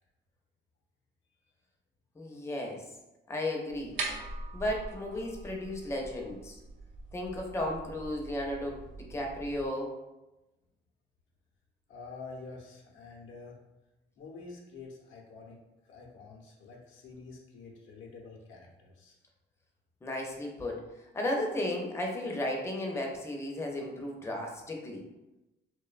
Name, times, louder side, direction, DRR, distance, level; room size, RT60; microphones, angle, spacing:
voice 1, 2.2-2.8 3.3-4.0 4.5-6.6 7.1-8.8 9.1-9.9 20.0-20.8 21.1-25.0, left 1 dB, 15° left, 1 dB, 0.4 m, -34 dB
sound 1, 3.7-9.7, right 2 dB, 70° right, 0.5 m, -43 dB
voice 2, 11.9-13.6 14.2-15.6 15.9-19.2, left 4 dB, 80° left, -1 dB, 0.6 m, -47 dB
2.6 x 2.1 x 2.4 m, 1.0 s
cardioid pair, 90°, 20 cm